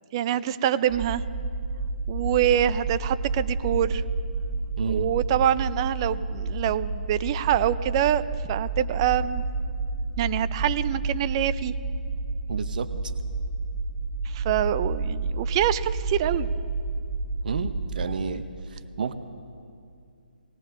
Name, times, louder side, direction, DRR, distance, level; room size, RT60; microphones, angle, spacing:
voice 1, 0.1-1.2 2.1-4.0 4.9-8.2 8.5-9.4 10.2-11.7 14.2-16.5, right 11 dB, 30° right, 15 dB, 0.4 m, -25 dB
sound 1, 0.9-18.2, right 3 dB, 10° right, 1.3 m, -30 dB
voice 2, 4.8-5.1 12.5-12.9 17.4-18.4 18.7-19.1, right 5 dB, 55° right, 11 dB, 0.8 m, -30 dB
18.5 x 18.0 x 3.7 m, 2.4 s
hypercardioid pair, 150°, 5 cm